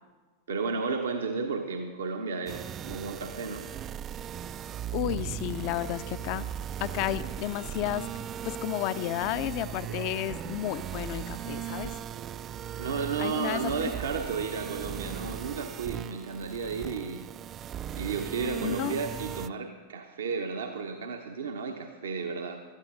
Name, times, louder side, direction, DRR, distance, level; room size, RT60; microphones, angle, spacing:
voice 1, 0.5-3.7 9.9-10.2 12.8-17.3 17.9-22.6, right 5 dB, 65° right, 4 dB, 0.9 m, -33 dB
sound 1, 2.5-19.5, right 10 dB, 30° right, 0.3 m, -38 dB
voice 2, 4.9-6.4 6.8-8.1 8.4-12.0 13.2-13.9 18.6-18.9, left 13 dB, 45° left, 14 dB, 0.5 m, -32 dB
16.5 x 13.0 x 3.8 m, 1.4 s
figure-of-eight pair, 90°, 0 cm